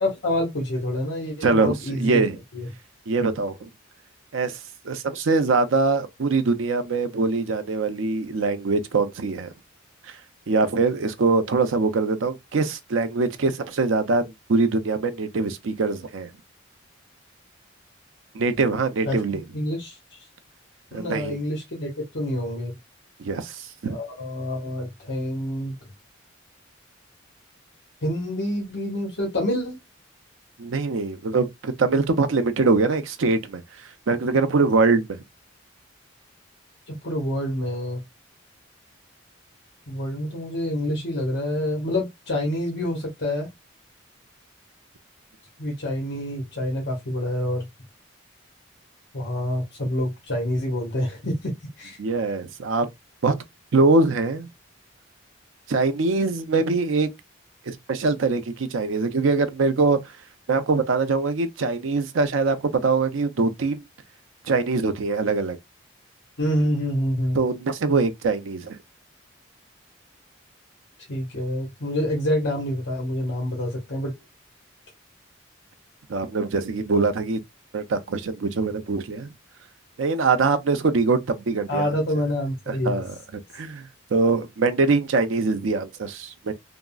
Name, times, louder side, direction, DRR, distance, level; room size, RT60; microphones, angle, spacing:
voice 1, 0.0-2.2 2.5-2.7 19.0-19.2 19.5-20.2 20.9-22.7 23.9-25.7 28.0-29.8 36.9-38.0 39.9-43.5 45.6-47.7 49.1-51.5 51.8-52.0 66.4-67.4 71.1-74.1 81.7-83.0, left 1 dB, 65° left, 1.0 m, -27 dB
voice 2, 1.4-2.4 3.1-3.7 4.3-4.6 4.8-9.5 10.1-10.2 10.5-16.3 18.3-19.4 20.9-21.4 23.2-24.0 30.6-33.6 34.1-35.2 52.0-52.9 53.2-53.4 53.7-54.5 55.7-57.1 57.7-60.1 60.5-63.8 64.4-65.6 67.3-68.8 76.1-77.4 77.7-79.3 80.0-81.9 82.7-83.1 83.5-86.5, right 3 dB, 75° right, 0.5 m, -23 dB
3.5 x 2.0 x 2.3 m
head